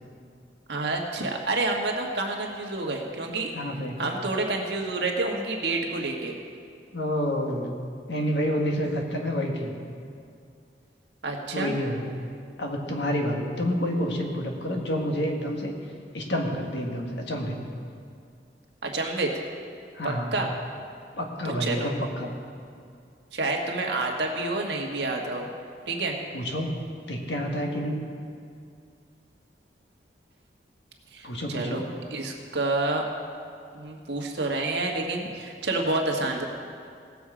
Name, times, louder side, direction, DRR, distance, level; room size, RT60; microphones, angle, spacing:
voice 1, 0.7-3.5 4.0-6.4 11.2-11.7 18.8-19.3 20.0-20.5 21.6-21.9 23.3-25.5 25.9-26.2 31.1-31.8 32.1-33.0 33.7-36.5, right 2 dB, 75° right, 1 dB, 1.5 m, -28 dB
voice 2, 3.5-4.0 6.9-7.7 8.1-9.7 11.5-12.1 12.6-15.7 16.1-17.6 19.9-20.3 21.2-22.3 26.3-26.7 27.1-28.0 31.2-31.8, equal, 80° left, 1 dB, 1.6 m, -28 dB
17.5 x 7.2 x 5.0 m, 2.3 s
head